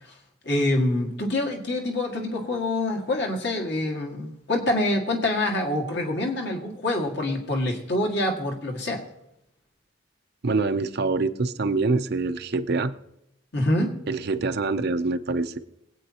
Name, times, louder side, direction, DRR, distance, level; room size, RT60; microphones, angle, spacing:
voice 1, 0.5-9.0 13.5-13.9, left 1 dB, 60° left, 1 dB, 1.9 m, -26 dB
voice 2, 10.4-12.9 14.1-15.6, right 3 dB, 55° right, 9 dB, 0.6 m, -25 dB
23.5 x 8.6 x 2.9 m, 0.82 s
head